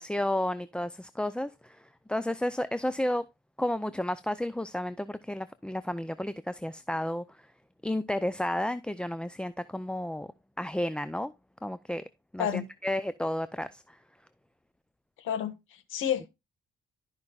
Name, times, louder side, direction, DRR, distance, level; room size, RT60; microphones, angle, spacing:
voice 1, 0.0-3.2 3.6-7.2 7.8-10.3 10.6-11.3 11.6-12.0 12.3-14.0, left 1 dB, 5° left, 0.5 m, -32 dB
voice 2, 15.2-16.3, left 9 dB, 85° left, 1.8 m, -30 dB
13.0 x 5.5 x 2.4 m
cardioid pair, 90°, 20 cm